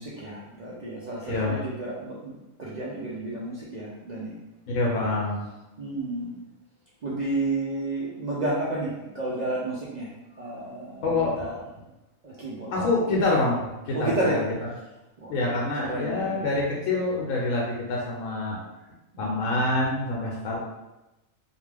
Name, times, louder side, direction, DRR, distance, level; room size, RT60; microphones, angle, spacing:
voice 1, 0.0-4.3 5.8-6.4 7.0-10.1 10.4-11.6 12.2-12.8 13.9-14.4 15.2-15.6 15.9-16.5 19.1-19.5, right 2 dB, 90° right, -7 dB, 0.3 m, -31 dB
voice 2, 1.2-1.6 4.7-5.5 11.0-11.5 12.7-14.4 15.3-18.6 19.2-20.6, left 2 dB, 85° left, -3 dB, 1.0 m, -26 dB
2.5 x 2.3 x 3.2 m, 0.99 s
omnidirectional pair, 1.4 m